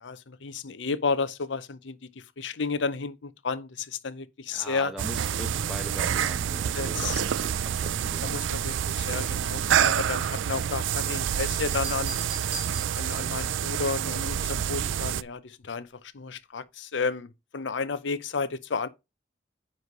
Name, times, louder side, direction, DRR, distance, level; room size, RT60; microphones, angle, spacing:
voice 1, 0.0-2.0 2.4-4.9 6.8-7.2 8.2-12.2 12.9-15.9 16.1-18.9, left 4 dB, 75° left, 0.6 m, -32 dB
voice 2, 4.5-8.3, equal, ahead, 1.0 m, -41 dB
sound 1, 5.0-15.2, right 9 dB, 85° right, 0.4 m, -28 dB
sound 2, 12.0-13.4 15.0-15.4, equal, 55° right, 2.3 m, -42 dB
9.5 x 3.3 x 5.3 m
head